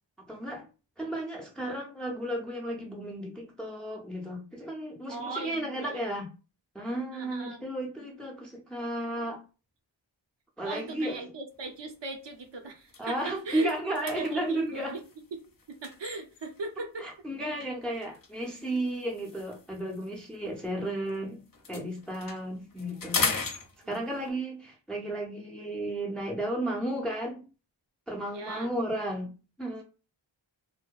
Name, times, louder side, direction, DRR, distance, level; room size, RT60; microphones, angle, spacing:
voice 1, 0.3-0.7 1.0-6.3 6.7-9.4 10.6-11.2 13.0-15.0 17.0-21.4 21.7-23.3 23.9-27.4 28.1-29.3 29.6-29.8, right 1 dB, ahead, 0.5 m, -33 dB
voice 2, 5.1-6.1 7.1-7.6 10.6-13.7 14.0-15.0 15.3-15.4 15.7-17.1 23.8-24.0 28.3-28.7, right 3 dB, 65° right, 0.7 m, -39 dB
sound 1, 11.6-11.9 12.3-12.4 12.8-16.7 17.6-21.2 21.4-24.3, left 4 dB, 50° left, 0.5 m, -38 dB
2.6 x 2.1 x 2.3 m
wide cardioid pair, 45°, 47 cm